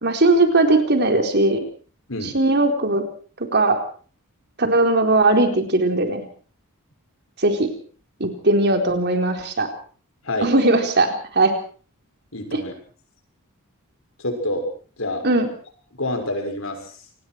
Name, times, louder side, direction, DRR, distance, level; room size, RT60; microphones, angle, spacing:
voice 1, 0.0-1.7 2.2-3.0 3.5-3.8 4.6-6.2 7.4-7.7 8.2-9.7 10.4-11.5 12.5-12.6 15.2-15.5, right 2 dB, 50° right, 5 dB, 4.1 m, -19 dB
voice 2, 12.3-12.7 14.2-14.6 15.0-15.2 16.0-16.9, left 1 dB, 60° left, 5 dB, 6.6 m, -27 dB
27.5 x 20.0 x 4.7 m, 0.43 s
head